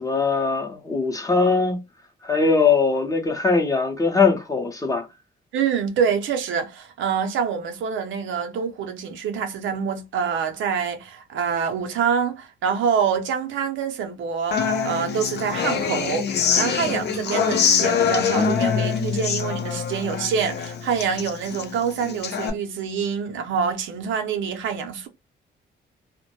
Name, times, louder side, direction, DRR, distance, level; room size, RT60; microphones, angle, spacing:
voice 1, 0.0-1.8 2.2-5.0, left 4 dB, 15° left, 0.6 m, -21 dB
voice 2, 5.5-25.1, right 7 dB, 75° right, 0.6 m, -26 dB
Human voice / Acoustic guitar, 14.5-22.5, left 6 dB, 60° left, 0.5 m, -24 dB
2.1 x 2.1 x 2.9 m
cardioid pair, 90°, 20 cm